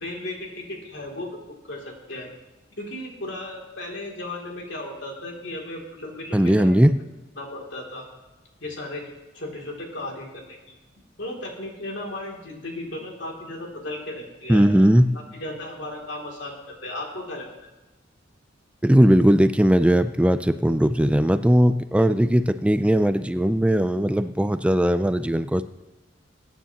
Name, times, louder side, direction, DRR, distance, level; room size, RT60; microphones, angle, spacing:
voice 1, 0.0-1.3 1.7-2.3 2.8-6.8 7.4-8.0 8.6-9.0 9.3-10.6 11.2-14.7 15.4-17.5, left 1 dB, 70° left, -1 dB, 2.8 m, -35 dB
voice 2, 6.3-6.9 14.5-15.1 18.8-25.6, equal, 5° right, 12 dB, 0.4 m, -18 dB
22.0 x 9.5 x 2.9 m, 1.1 s
head